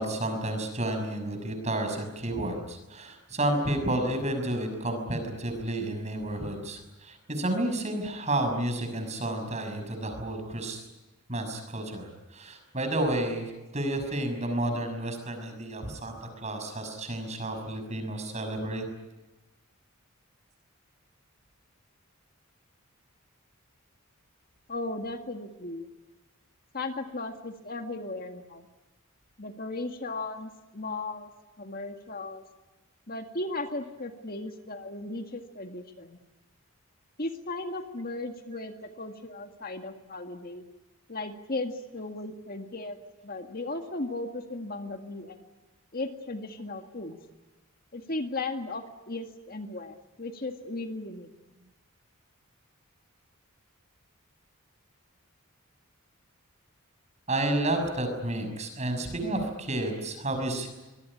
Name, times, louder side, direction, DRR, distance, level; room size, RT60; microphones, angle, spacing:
voice 1, 0.0-10.8 11.3-18.8 57.3-60.7, right 1 dB, 30° right, 6 dB, 6.2 m, -31 dB
voice 2, 24.7-25.9 26.7-28.7 29.4-31.3 31.6-32.4 33.1-36.2 37.2-40.6 41.1-43.0 43.2-45.4 45.9-47.2 47.9-51.3, left 2 dB, 45° left, 5 dB, 1.9 m, -36 dB
25.0 x 22.0 x 9.9 m, 1.1 s
head